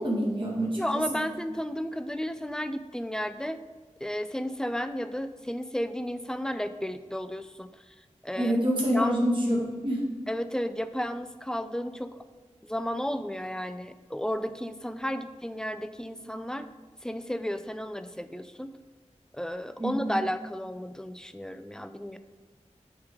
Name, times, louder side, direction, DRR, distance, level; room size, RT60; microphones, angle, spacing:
voice 1, 0.0-1.3 8.4-10.0 19.8-20.2, equal, 40° right, -5 dB, 1.7 m, -27 dB
voice 2, 0.8-3.6 4.0-7.9 8.2-8.6 8.9-9.2 10.3-12.2 12.6-16.7 17.0-18.7 19.3-22.2, equal, 5° left, 10 dB, 0.4 m, -33 dB
8.1 x 3.3 x 4.9 m, 1.3 s
wide cardioid pair, 55°, 12 cm